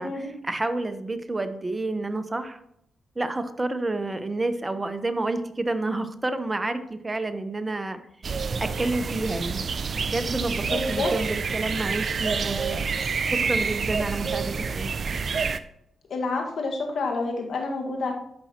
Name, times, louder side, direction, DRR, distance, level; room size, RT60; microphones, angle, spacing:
voice 1, 0.0-2.6 3.2-8.0 8.6-9.7 9.9-12.8 13.3-14.9, right 2 dB, 25° right, 9 dB, 1.0 m, -29 dB
sound 1, 8.2-15.6, right 5 dB, 55° right, 0.5 m, -28 dB
voice 2, 10.6-11.1 16.1-18.1, left 3 dB, 70° left, 1 dB, 1.7 m, -28 dB
13.5 x 5.6 x 3.0 m, 0.75 s
supercardioid pair, 55°, 0 cm